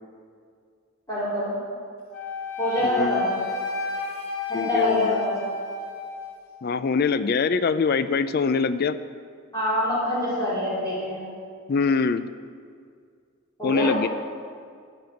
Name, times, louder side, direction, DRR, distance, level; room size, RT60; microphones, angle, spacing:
voice 1, 1.1-1.6 2.6-3.4 4.5-5.3 9.5-11.3 13.6-13.9, left 1 dB, 15° left, -10 dB, 4.1 m, -25 dB
Wind instrument woodwind instrument, 2.1-6.4, left 4 dB, 85° left, 2.3 m, -33 dB
voice 2, 2.8-3.2 4.5-5.2 6.6-9.0 11.7-12.3 13.6-14.1, left 5 dB, 45° left, 13 dB, 0.4 m, -23 dB
13.5 x 6.0 x 9.4 m, 2.1 s
head